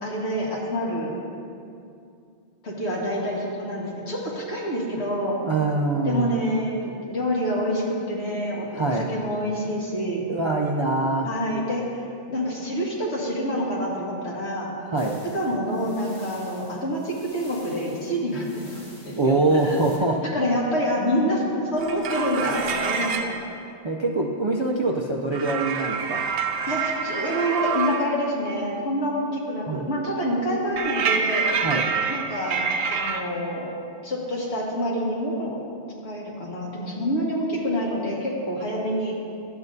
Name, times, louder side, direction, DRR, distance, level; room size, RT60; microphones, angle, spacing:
voice 1, 0.0-1.1 2.6-5.4 6.0-10.2 11.2-14.7 15.3-19.8 20.3-21.4 21.7-23.3 26.7-31.5 32.1-33.7 34.0-35.6 36.0-39.2, equal, 85° left, -3 dB, 1.7 m, -27 dB
voice 2, 5.4-6.3 8.7-9.1 10.3-11.3 14.9-15.2 19.2-20.2 23.8-26.2 29.7-29.8 31.6-31.9, right 2 dB, 45° right, -2 dB, 0.3 m, -24 dB
sound 1, 15.0-20.0, left 1 dB, 40° left, 1.5 m, -50 dB
sound 2, 21.8-23.4 25.3-28.1 30.8-33.2, right 6 dB, 70° right, 0.7 m, -26 dB
12.0 x 7.9 x 2.7 m, 2.5 s
omnidirectional pair, 1.1 m